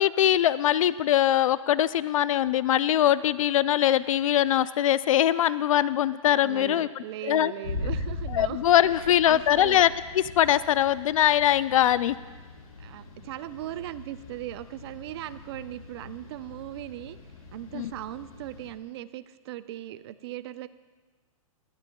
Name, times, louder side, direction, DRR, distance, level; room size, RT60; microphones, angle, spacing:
voice 1, 0.0-6.9 7.3-7.5 8.3-12.2 17.7-17.9, left 11 dB, 70° left, 17 dB, 0.4 m, -22 dB
voice 2, 6.4-9.8 12.8-17.2 17.5-20.7, right 13 dB, 45° right, 14 dB, 0.6 m, -38 dB
sound 1, 7.6-18.7, left 3 dB, 90° left, 3.8 m, -40 dB
19.5 x 14.0 x 2.3 m, 1.4 s
hypercardioid pair, 140°, 18 cm